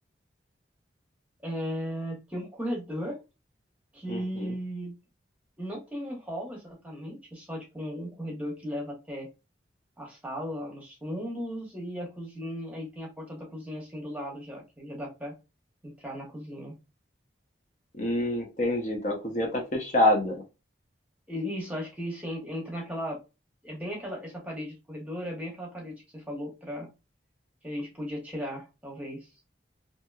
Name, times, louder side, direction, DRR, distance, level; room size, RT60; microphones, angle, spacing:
voice 1, 1.4-3.2 3.9-5.0 5.6-9.3 10.0-15.3 15.8-16.7 21.3-23.2 23.6-26.9 27.6-29.3, equal, 10° right, -2 dB, 0.9 m, -36 dB
voice 2, 4.1-4.5 18.0-20.4, left 1 dB, 40° left, 1 dB, 0.6 m, -27 dB
2.9 x 2.7 x 2.3 m, 0.27 s
head